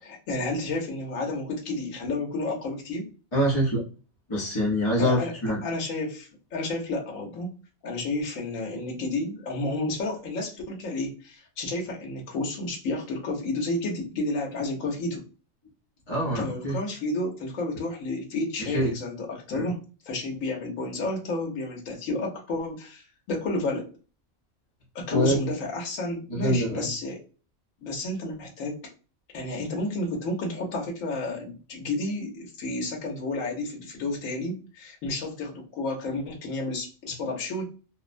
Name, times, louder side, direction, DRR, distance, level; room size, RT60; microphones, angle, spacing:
voice 1, 0.0-3.1 5.0-5.3 5.6-7.5 7.8-15.2 16.3-23.9 24.9-27.2 27.8-28.8 29.3-37.7, left 2 dB, 75° left, -1 dB, 1.2 m, -31 dB
voice 2, 3.3-3.8 4.3-5.6 16.1-16.8 18.6-18.9 19.5-19.7 25.1-25.4 26.3-26.9, equal, 30° left, -5 dB, 0.6 m, -25 dB
2.9 x 2.0 x 2.5 m, 0.34 s
omnidirectional pair, 1.4 m